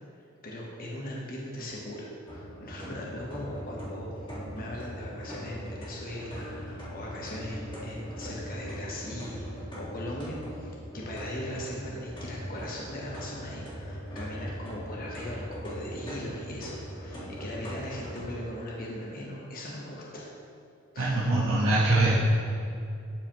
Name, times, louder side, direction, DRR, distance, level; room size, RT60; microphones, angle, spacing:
voice 1, 0.1-4.1 4.5-20.3 20.9-21.3 21.6-21.7, left 1 dB, 45° left, -3 dB, 1.1 m, -39 dB
sound 1, 2.3-18.2, equal, 25° left, 1.8 m, -40 dB
voice 2, 21.0-22.1, right 2 dB, 75° right, -8 dB, 1.2 m, -23 dB
12.0 x 4.8 x 3.0 m, 2.5 s
head